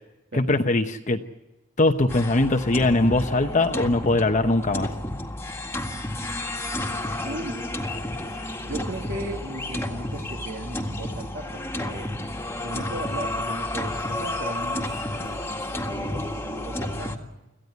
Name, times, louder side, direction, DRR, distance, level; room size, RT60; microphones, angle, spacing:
voice 1, 0.3-1.2 1.8-4.9, left 2 dB, 40° left, 5 dB, 0.9 m, -21 dB
sound 1, 2.1-17.2, left 1 dB, 15° left, 1.8 m, -31 dB
voice 2, 7.2-7.7 8.3-12.1 12.5-17.2, right 1 dB, 60° right, 1 dB, 2.1 m, -37 dB
26.0 x 15.0 x 9.4 m, 1.0 s
head